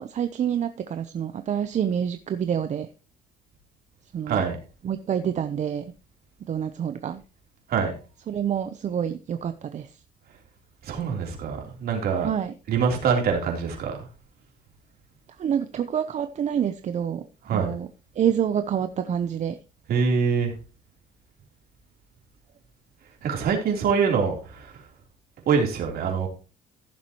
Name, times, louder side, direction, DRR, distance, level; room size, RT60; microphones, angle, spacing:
voice 1, 0.0-2.9 4.1-4.4 4.8-5.8 6.5-7.2 8.3-9.9 12.2-12.5 15.4-17.2 17.5-17.9 18.2-19.6, right 9 dB, 45° right, 0.8 m, -27 dB
voice 2, 10.8-12.3 12.7-14.1 17.4-17.7 19.9-20.5 23.2-24.8 25.5-26.3, right 6 dB, 65° right, 3.6 m, -24 dB
15.0 x 7.3 x 3.1 m
cardioid pair, 110°, 17 cm